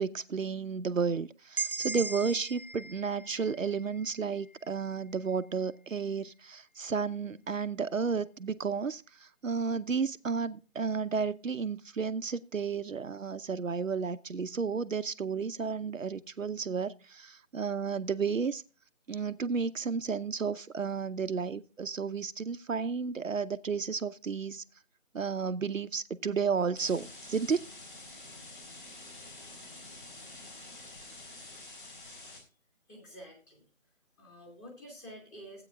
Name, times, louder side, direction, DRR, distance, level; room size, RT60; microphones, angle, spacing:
voice 1, 0.0-9.0 9.4-18.6 19.1-24.6 25.1-27.6, right 5 dB, 75° right, 0.8 m, -32 dB
sound 1, 1.6-5.4, right 5 dB, 45° right, 0.6 m, -39 dB
sound 2, 26.7-32.4, left 2 dB, 40° left, 3.6 m, -48 dB
voice 2, 32.9-33.6 34.2-35.6, equal, 15° left, 2.5 m, -49 dB
16.0 x 8.8 x 2.4 m
figure-of-eight pair, 160°, 40 cm